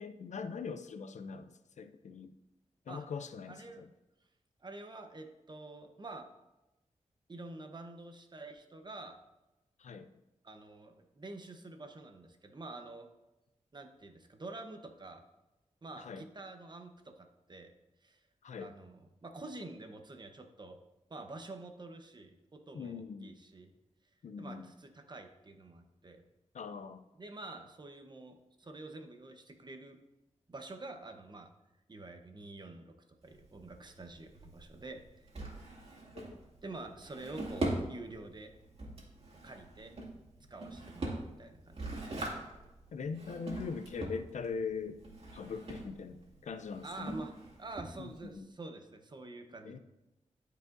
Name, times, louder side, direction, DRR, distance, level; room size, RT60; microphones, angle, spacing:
voice 1, 0.0-1.5 1.8-2.3 2.9-3.9 9.8-10.1 16.0-16.2 18.4-18.7 22.7-23.3 24.2-24.7 26.5-27.1 36.1-36.2 42.9-45.0 45.3-47.2 48.0-48.5 49.6-49.8, left 5 dB, 75° left, 10 dB, 0.5 m, -41 dB
voice 2, 3.5-3.8 4.6-6.3 7.3-9.2 10.4-13.1 13.7-15.2 15.8-17.7 18.0-18.2 18.6-20.8 21.1-23.7 24.4-26.2 27.1-30.0 30.5-31.5 31.9-32.9 33.2-35.0 36.6-38.5 39.4-39.9 40.5-42.2 46.8-47.3 47.6-49.8, right 2 dB, 35° right, 5 dB, 0.9 m, -47 dB
Drawer open or close, 33.2-48.4, right 2 dB, 55° right, 2.1 m, -42 dB
12.5 x 4.9 x 2.6 m, 0.97 s
cardioid pair, 70°, 12 cm